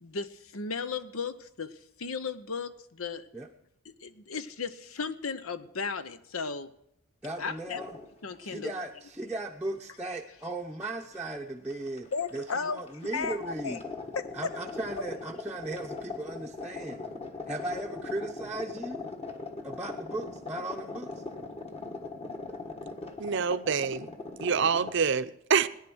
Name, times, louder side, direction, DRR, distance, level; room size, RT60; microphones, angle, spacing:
voice 1, 0.0-3.3 4.0-6.7 7.4-7.8 8.2-8.7 12.1-12.8 13.1-13.8 14.1-14.6, left 5 dB, 85° left, 13 dB, 0.9 m, -35 dB
voice 2, 7.2-8.0 8.4-13.8 14.3-17.0 17.5-19.1 19.6-21.2, right 2 dB, 5° right, -2 dB, 0.7 m, -37 dB
sound 1, 7.4-8.1 8.4-8.7 10.0-10.1 11.1-11.3 11.7-25.0, left 3 dB, 30° left, 1.4 m, -40 dB
voice 3, 23.2-24.1 24.4-25.7, right 6 dB, 55° right, 12 dB, 0.6 m, -26 dB
18.0 x 10.5 x 6.2 m, 0.77 s
head